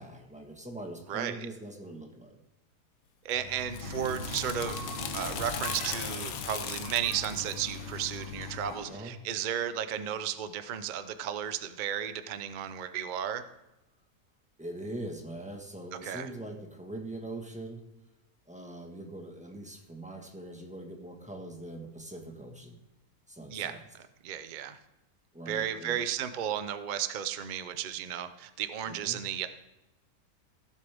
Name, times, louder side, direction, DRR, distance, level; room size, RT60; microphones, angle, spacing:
voice 1, 0.0-2.4 8.9-9.2 14.6-17.8 18.5-22.8 23.3-23.8 25.3-26.1 28.8-29.2, right 1 dB, 5° right, 2 dB, 1.2 m, -42 dB
voice 2, 1.1-1.5 3.2-13.4 16.0-16.3 23.5-23.8 24.2-24.8 25.5-29.5, right 9 dB, 85° right, 11 dB, 0.4 m, -34 dB
sound 1, 3.3-8.8, left 8 dB, 65° left, 1.1 m, -39 dB
sound 2, 3.8-8.9, equal, 30° left, 2.6 m, -41 dB
16.0 x 7.5 x 3.5 m, 0.98 s
omnidirectional pair, 1.8 m